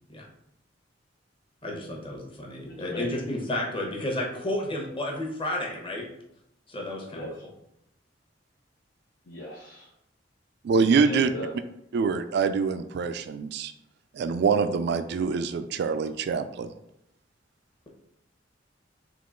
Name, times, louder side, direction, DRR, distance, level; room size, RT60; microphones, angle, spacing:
voice 1, 1.6-6.1 6.7-7.5, left 1 dB, 30° left, 0 dB, 0.9 m, -32 dB
voice 2, 2.7-3.3 7.1-7.3 9.3-9.9 11.0-11.5, left 1 dB, 80° left, -4 dB, 0.9 m, -37 dB
voice 3, 10.6-11.3 11.9-13.7 14.1-16.7, right 5 dB, 60° right, 10 dB, 0.3 m, -25 dB
3.7 x 2.9 x 3.7 m, 0.78 s
head